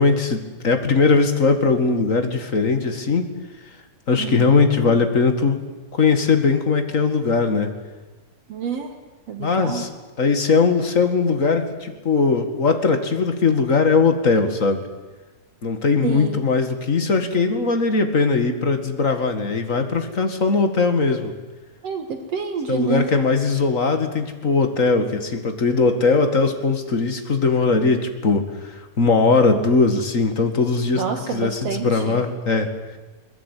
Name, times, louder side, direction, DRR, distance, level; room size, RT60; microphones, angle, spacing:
voice 1, 0.0-3.3 4.1-5.6 5.9-7.7 9.4-9.9 10.2-14.8 15.6-21.3 22.7-31.0 31.3-32.7, left 4 dB, 30° left, 7 dB, 1.8 m, -20 dB
voice 2, 4.2-4.6 8.5-8.9 9.3-9.8 16.0-16.4 21.8-23.1 31.0-32.2, right 7 dB, 60° right, 6 dB, 2.5 m, -28 dB
22.0 x 21.0 x 9.2 m, 1.2 s
omnidirectional pair, 3.3 m